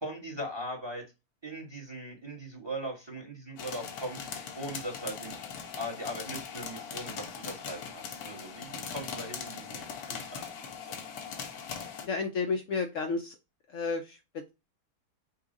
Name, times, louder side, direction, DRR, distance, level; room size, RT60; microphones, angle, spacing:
voice 1, 0.0-1.0 1.4-4.2 4.6-5.3 5.8-10.5 10.8-11.0, right 1 dB, 20° right, 0 dB, 1.2 m, -39 dB
sound 1, 3.6-12.1, left 6 dB, 85° left, 1.3 m, -40 dB
voice 2, 12.0-13.4 13.7-14.5, left 4 dB, 65° left, 5 dB, 0.8 m, -32 dB
5.7 x 2.3 x 3.7 m, 0.25 s
omnidirectional pair, 1.6 m